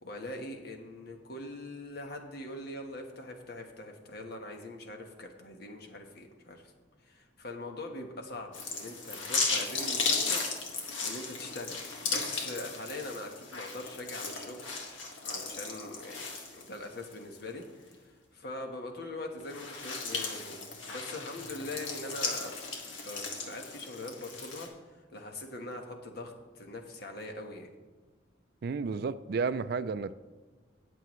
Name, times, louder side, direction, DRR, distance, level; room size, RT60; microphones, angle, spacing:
voice 1, 0.0-6.7 7.0-10.4 11.0-14.7 15.2-17.6 18.1-20.6 20.8-22.6 22.9-24.7 25.1-27.7, left 2 dB, 55° left, 3 dB, 1.3 m, -42 dB
sound 1, 8.5-17.1 17.6-17.7 19.4-24.7, left 4 dB, 80° left, 1.8 m, -35 dB
voice 2, 28.6-30.1, right 5 dB, 55° right, 14 dB, 0.3 m, -32 dB
18.0 x 6.9 x 3.2 m, 1.4 s
head